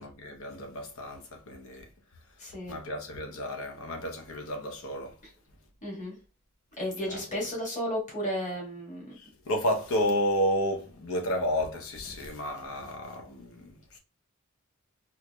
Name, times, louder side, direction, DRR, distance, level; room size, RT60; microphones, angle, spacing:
voice 1, 0.0-1.9 2.6-5.2 7.1-7.2 9.1-14.0, equal, 75° left, 0.8 m, -31 dB
voice 2, 2.4-2.8 5.8-6.2 6.8-9.2, equal, 35° left, 1.7 m, -33 dB
4.5 x 2.6 x 2.3 m
head